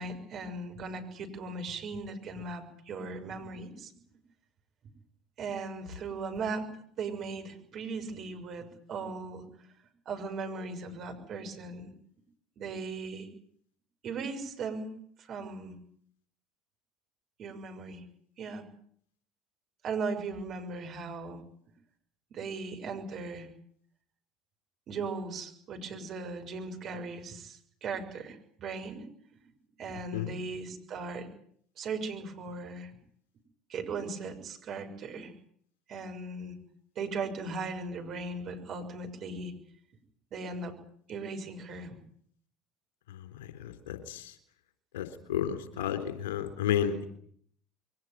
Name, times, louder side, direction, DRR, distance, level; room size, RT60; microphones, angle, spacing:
voice 1, 0.0-3.9 5.4-6.7 7.0-9.4 10.0-11.9 12.6-13.3 14.0-15.7 17.4-18.0 18.4-18.6 19.8-21.4 22.3-23.5 24.9-29.1 29.8-31.3 31.8-32.9 33.7-35.3 35.9-36.6 37.0-39.5 40.3-40.7 41.1-42.0, right 4 dB, 45° right, 4 dB, 6.3 m, -38 dB
voice 2, 43.4-44.3 44.9-47.1, left 9 dB, 70° left, 8 dB, 3.7 m, -32 dB
23.0 x 18.5 x 9.5 m, 0.63 s
figure-of-eight pair, 65°, 0 cm